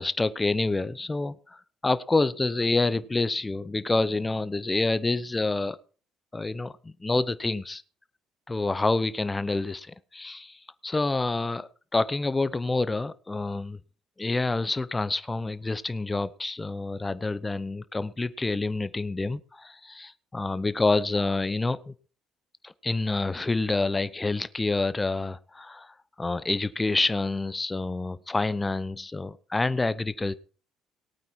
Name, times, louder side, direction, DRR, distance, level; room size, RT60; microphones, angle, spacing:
voice 1, 0.0-5.8 6.3-7.8 8.5-13.8 14.2-21.9 22.6-30.3, left 3 dB, 20° left, 16 dB, 0.8 m, -28 dB
18.5 x 8.9 x 4.3 m, 0.39 s
hypercardioid pair, 60°, 0 cm